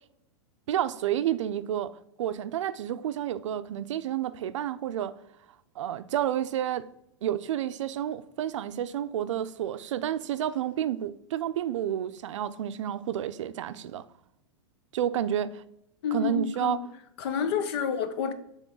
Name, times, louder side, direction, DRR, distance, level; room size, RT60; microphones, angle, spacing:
voice 1, 0.7-1.9 2.2-5.1 5.8-6.9 7.2-14.0 14.9-15.6 16.1-16.8, right 11 dB, 80° right, 0.5 m, -30 dB
voice 2, 16.0-16.9 17.2-18.3, left 6 dB, 55° left, 0.8 m, -29 dB
6.1 x 3.6 x 5.3 m
supercardioid pair, 150°, 15 cm